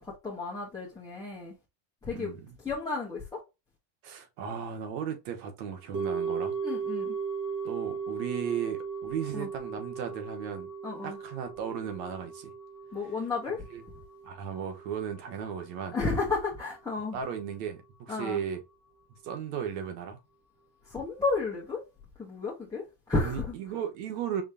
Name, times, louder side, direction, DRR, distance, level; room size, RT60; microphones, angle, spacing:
voice 1, 0.0-1.5 2.0-2.3 2.6-3.4 6.6-7.2 9.3-9.5 10.8-11.2 12.9-13.6 15.9-17.2 18.1-18.4 20.9-21.8 22.2-23.5, left 3 dB, 10° left, 1.3 m, -32 dB
voice 2, 2.1-2.6 4.0-6.6 7.6-10.7 11.0-12.5 13.7-13.8 14.2-16.0 17.1-18.6 19.2-20.2 23.2-24.4, right 8 dB, 90° right, 1.4 m, -36 dB
sound 1, 5.9-16.2 16.5-16.6, right 5 dB, 65° right, 2.5 m, -37 dB
5.0 x 3.2 x 2.8 m
cardioid pair, 135°, 47 cm